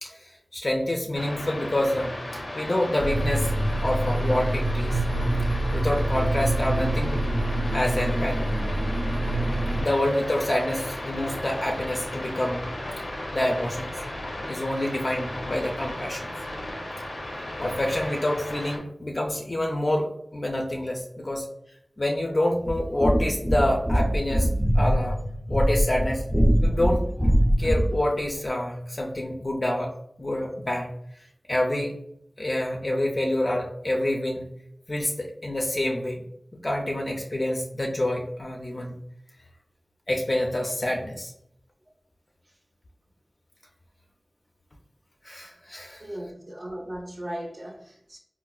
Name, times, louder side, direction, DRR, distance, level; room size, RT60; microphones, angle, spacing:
voice 1, 0.0-3.5 3.8-5.0 5.7-7.2 7.7-8.5 9.8-12.7 13.3-14.0 14.5-16.3 17.6-21.5 22.0-24.5 24.7-25.2 25.5-26.2 26.6-27.0 27.6-29.9 30.2-30.9 31.5-31.9 32.4-34.5 34.9-36.2 36.6-38.9 40.1-41.3 45.2-46.0, left 1 dB, 45° left, 0.4 m, -27 dB
sound 1, 1.1-18.8, left 1 dB, 90° left, 0.6 m, -35 dB
sound 2, 3.0-9.8, right 1 dB, 90° right, 0.8 m, -26 dB
sound 3, 22.6-28.0, equal, 5° right, 0.6 m, -23 dB
voice 2, 46.0-48.2, equal, 45° right, 0.5 m, -37 dB
4.2 x 2.0 x 2.3 m
wide cardioid pair, 50°, 0 cm